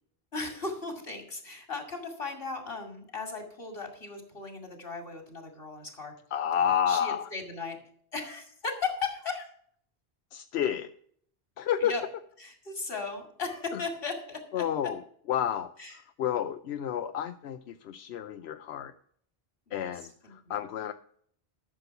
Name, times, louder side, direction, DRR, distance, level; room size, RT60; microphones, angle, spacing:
voice 1, 0.3-6.1 6.9-7.8 8.1-9.5 11.8-12.0 12.4-14.6 15.8-16.0 19.7-20.5, left 4 dB, 65° left, 4 dB, 2.6 m, -37 dB
voice 2, 6.3-7.3 10.3-10.9 11.6-11.9 13.7-13.8 14.5-15.0 15.3-15.7 16.2-18.9 19.7-20.9, left 9 dB, 85° left, 9 dB, 0.9 m, -30 dB
12.5 x 6.8 x 5.7 m, 0.62 s
omnidirectional pair, 1.1 m